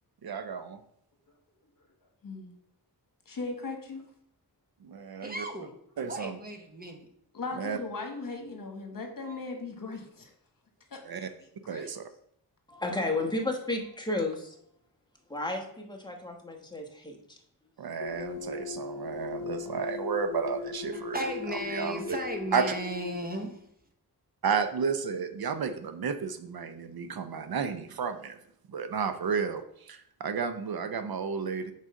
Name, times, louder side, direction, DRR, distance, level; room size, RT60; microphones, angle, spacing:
voice 1, 0.2-0.8 4.8-5.4 6.0-6.4 7.6-7.8 11.0-11.3 11.7-12.0 17.8-21.2 21.7-22.2 22.5-22.6 24.4-28.4 28.7-31.7, right 6 dB, 65° right, 9 dB, 0.6 m, -32 dB
voice 2, 2.2-2.6 3.3-4.0 7.3-10.3 10.9-11.9, left 3 dB, 55° left, 3 dB, 1.3 m, -38 dB
voice 3, 5.2-5.7 6.0-7.1 8.9-9.4 20.9-23.6, right 1 dB, 25° right, 3 dB, 1.0 m, -36 dB
voice 4, 12.7-14.6 15.3-17.4, left 2 dB, 10° left, 1 dB, 1.0 m, -32 dB
sound 1, 18.0-23.2, left 6 dB, 90° left, 0.7 m, -39 dB
6.2 x 4.1 x 5.1 m, 0.71 s
wide cardioid pair, 135°, 40 cm